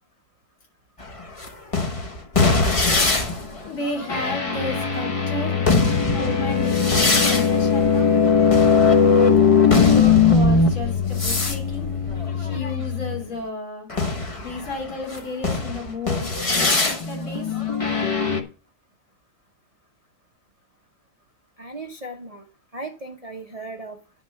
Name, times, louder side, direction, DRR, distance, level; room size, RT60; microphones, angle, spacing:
sound 1, 1.0-13.2 13.9-18.4, left 5 dB, 30° left, 0.6 m, -20 dB
voice 1, 3.7-5.5 6.1-8.1 9.4-11.9 12.4-13.9 14.4-16.7 17.1-17.5, left 3 dB, 70° left, 0 dB, 3.4 m, -32 dB
voice 2, 21.6-22.5 22.7-24.0, right 2 dB, 50° right, 3 dB, 0.4 m, -36 dB
10.5 x 6.1 x 5.8 m, 0.35 s
omnidirectional pair, 2.4 m